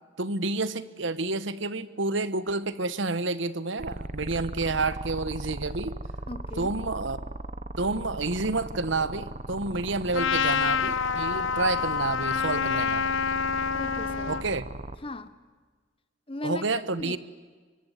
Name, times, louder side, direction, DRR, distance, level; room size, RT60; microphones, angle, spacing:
voice 1, 0.2-6.0 6.6-7.2 7.8-13.0 14.3-14.7 16.4-17.2, right 3 dB, 70° right, 14 dB, 1.2 m, -29 dB
sound 1, 3.8-15.0, right 2 dB, 35° right, 1.0 m, -38 dB
voice 2, 6.3-6.7 13.7-14.4 15.0-15.3 16.3-17.2, left 2 dB, 25° left, 13 dB, 1.1 m, -38 dB
Trumpet, 10.1-14.4, left 6 dB, 80° left, 1.0 m, -27 dB
24.5 x 23.5 x 9.5 m, 1.4 s
head